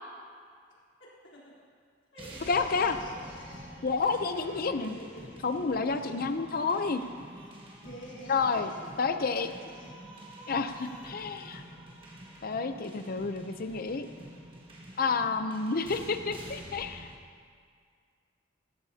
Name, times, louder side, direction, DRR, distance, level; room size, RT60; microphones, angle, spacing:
voice 1, 1.3-1.7 2.1-5.4 6.0-6.2 7.5-9.9 14.9-15.1, equal, 70° left, -7 dB, 3.6 m, -48 dB
sound 1, 2.2-17.2, right 1 dB, 30° right, 1.5 m, -48 dB
voice 2, 2.5-3.0 3.8-5.0 5.4-7.0 8.3-8.7 9.0-9.5 10.5-11.6 12.4-14.1 15.0-17.1, left 4 dB, 50° left, 9 dB, 0.6 m, -30 dB
16.0 x 14.5 x 2.8 m, 2.1 s
head